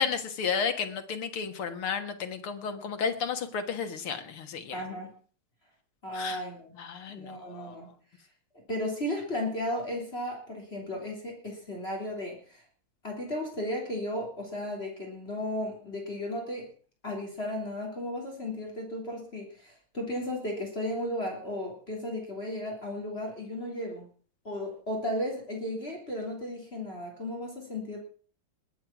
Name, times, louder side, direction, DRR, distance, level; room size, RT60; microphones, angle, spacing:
voice 1, 0.0-4.8 6.1-6.4 6.8-7.8, left 6 dB, 85° left, 7 dB, 2.5 m, -32 dB
voice 2, 4.7-5.1 6.0-6.7 7.1-7.9 8.7-12.6 13.0-16.7 17.0-24.1 24.4-28.0, left 1 dB, 30° left, -1 dB, 3.7 m, -35 dB
20.5 x 7.9 x 6.0 m, 0.42 s
omnidirectional pair, 2.3 m